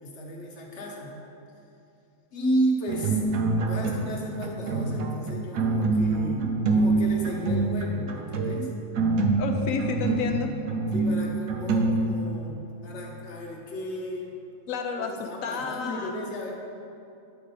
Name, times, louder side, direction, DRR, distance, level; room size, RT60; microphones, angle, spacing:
voice 1, 0.0-1.2 2.3-3.2 3.7-8.7 10.9-14.3 15.0-16.5, equal, 50° left, -1 dB, 1.3 m, -33 dB
sound 1, 2.9-4.2 4.4-12.5, right 3 dB, 70° right, 1.1 m, -25 dB
voice 2, 9.4-10.5 14.7-16.1, left 5 dB, 70° left, 4 dB, 0.9 m, -30 dB
9.4 x 4.8 x 4.1 m, 2.8 s
omnidirectional pair, 1.5 m